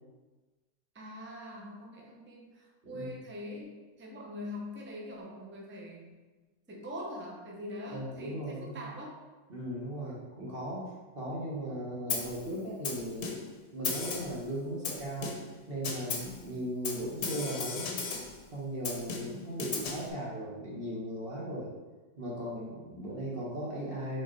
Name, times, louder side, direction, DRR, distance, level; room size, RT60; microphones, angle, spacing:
voice 1, 0.9-6.1 6.7-9.2, left 1 dB, 15° right, -1 dB, 0.4 m, -43 dB
voice 2, 7.9-8.9 9.5-10.8 11.1-13.4 13.7-15.3 15.7-17.9 18.5-21.7 22.2-24.2, right 1 dB, 35° right, -5 dB, 1.6 m, -37 dB
Snare drum, 12.1-12.4 12.8-13.6 13.8-14.4 14.8-15.6 15.8-16.4 16.8-18.4 18.8-20.1, left 4 dB, 60° left, 1.3 m, -36 dB
5.7 x 4.5 x 4.4 m, 1.2 s
omnidirectional pair, 2.0 m